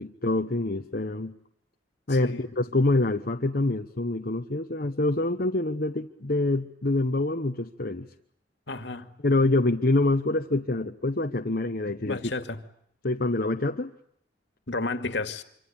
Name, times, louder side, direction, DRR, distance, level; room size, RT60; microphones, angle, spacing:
voice 1, 0.0-1.4 2.1-8.1 9.2-12.2 13.0-13.9, left 2 dB, 50° left, 3 dB, 1.1 m, -26 dB
voice 2, 2.1-2.5 8.7-9.1 12.0-12.6 14.7-15.4, left 3 dB, 70° left, 8 dB, 2.3 m, -32 dB
26.0 x 26.0 x 8.7 m, 0.71 s
head